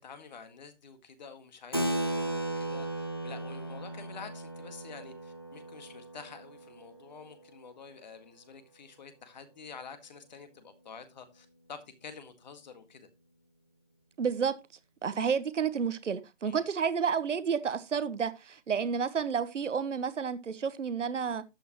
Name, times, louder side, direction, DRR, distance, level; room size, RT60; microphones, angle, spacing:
voice 1, 0.0-13.1 16.4-16.7, left 5 dB, 35° left, 1.8 m, -49 dB
Keyboard (musical), 1.7-7.7, right 1 dB, 20° left, 0.5 m, -36 dB
voice 2, 14.2-14.6 15.0-21.4, right 6 dB, 75° right, 1.2 m, -30 dB
12.0 x 8.9 x 3.0 m
hypercardioid pair, 165°, 37 cm